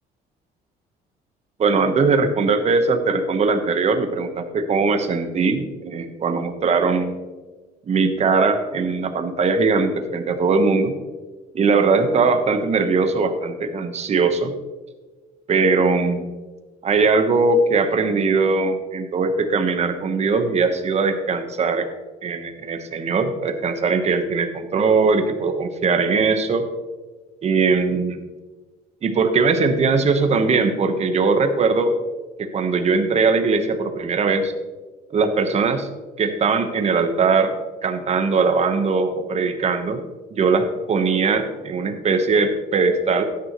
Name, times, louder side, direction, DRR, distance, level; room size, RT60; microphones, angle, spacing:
voice 1, 1.6-7.2 7.9-10.9 11.5-14.5 15.5-16.3 16.8-21.9 22.2-26.7 27.4-28.2 29.0-31.9 32.4-34.5 35.1-35.9 36.2-37.5 37.8-40.0 40.3-43.2, right 4 dB, 40° right, 7 dB, 1.2 m, -20 dB
12.5 x 9.7 x 3.1 m, 1.3 s
cardioid pair, 110°, 17 cm